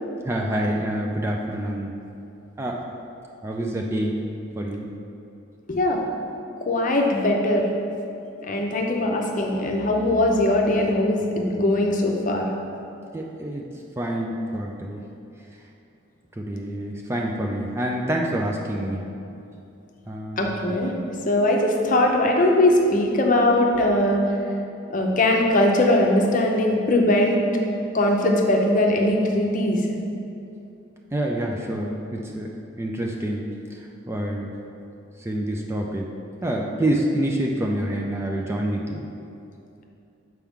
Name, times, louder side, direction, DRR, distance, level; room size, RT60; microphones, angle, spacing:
voice 1, 0.2-1.9 2.6-2.9 3.4-4.2 4.6-4.9 13.1-13.6 14.0-15.0 16.3-19.1 20.1-20.5 31.1-32.5 32.8-33.8 34.1-34.5 35.2-36.1 36.4-39.1, right 1 dB, 15° right, 0 dB, 0.3 m, -27 dB
voice 2, 5.7-6.0 6.7-7.7 8.5-12.5 20.4-20.9 21.3-24.2 24.9-27.4 27.9-29.8, left 1 dB, 40° left, 1 dB, 0.6 m, -20 dB
7.2 x 4.6 x 3.6 m, 2.7 s
head